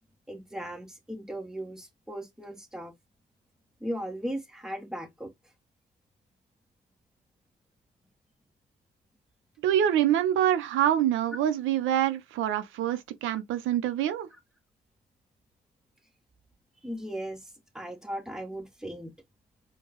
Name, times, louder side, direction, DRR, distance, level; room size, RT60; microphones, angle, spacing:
voice 1, 0.3-2.9 3.8-5.3 16.8-19.1, equal, 5° right, 1.1 m, -37 dB
voice 2, 9.6-14.3, right 10 dB, 85° right, 0.6 m, -25 dB
4.6 x 2.2 x 2.9 m
cardioid pair, 90°, 20 cm